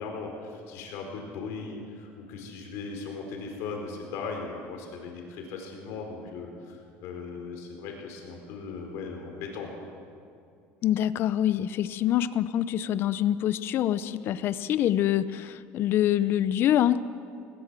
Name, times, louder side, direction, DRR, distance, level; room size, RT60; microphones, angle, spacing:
voice 1, 0.0-9.9, left 4 dB, 70° left, 2 dB, 4.5 m, -38 dB
voice 2, 10.8-17.0, left 11 dB, 50° left, 15 dB, 0.7 m, -25 dB
20.0 x 18.5 x 7.6 m, 2.4 s
cardioid pair, 135°, 5 cm